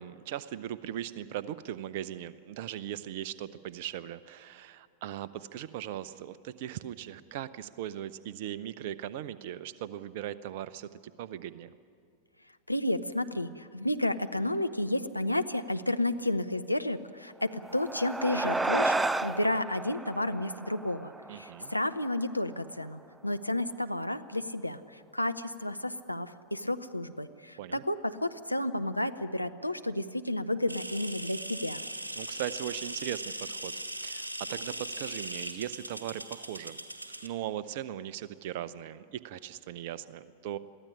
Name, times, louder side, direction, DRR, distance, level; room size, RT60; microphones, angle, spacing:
voice 1, 0.0-11.7 21.3-21.7 27.6-27.8 32.2-33.7 34.0-36.8 37.2-40.6, right 11 dB, 50° right, 16 dB, 0.8 m, -39 dB
voice 2, 12.7-31.8, left 1 dB, 90° left, 9 dB, 0.7 m, -31 dB
sound 1, 17.5-22.2, right 2 dB, 10° right, 0.5 m, -32 dB
sound 2, 30.7-37.3, right 1 dB, 80° right, 1.5 m, -39 dB
22.5 x 15.5 x 9.9 m, 2.3 s
figure-of-eight pair, 90°, 0 cm